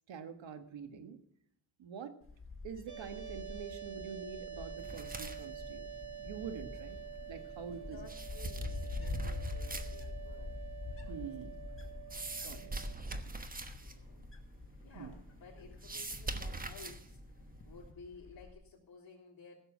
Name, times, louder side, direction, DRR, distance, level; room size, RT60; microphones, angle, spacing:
voice 1, 0.1-1.2 1.8-2.2 2.6-7.0 7.3-8.0 11.1-11.6 12.4-12.7 13.0-13.4 15.0-15.2, right 7 dB, 90° right, 8 dB, 1.6 m, -46 dB
Wind, 2.2-18.5, left 3 dB, 30° left, 2.0 m, -46 dB
sound 1, 2.9-12.9, right 9 dB, 40° right, 2.1 m, -48 dB
sound 2, 4.8-17.9, right 2 dB, 20° right, 1.2 m, -45 dB
voice 2, 7.8-10.6 11.0-11.5 11.8-12.0 13.7-14.3 14.8-19.6, left 4 dB, 50° left, -8 dB, 3.8 m, -55 dB
16.0 x 7.0 x 7.3 m, 0.69 s
cardioid pair, 115°, 44 cm